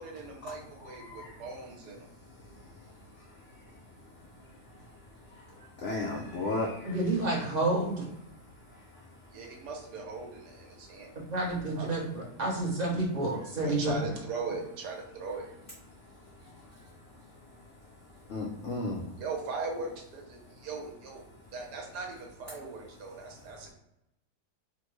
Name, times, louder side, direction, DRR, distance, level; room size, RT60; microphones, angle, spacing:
voice 1, 0.0-2.1 9.3-23.7, right 4 dB, 75° right, 1 dB, 1.4 m, -41 dB
voice 2, 5.8-6.9 18.3-19.1, left 2 dB, 70° left, -1 dB, 0.7 m, -33 dB
voice 3, 6.8-8.0 11.3-13.9, right 2 dB, 35° right, -4 dB, 0.7 m, -29 dB
3.6 x 2.1 x 3.0 m, 0.85 s
omnidirectional pair, 1.8 m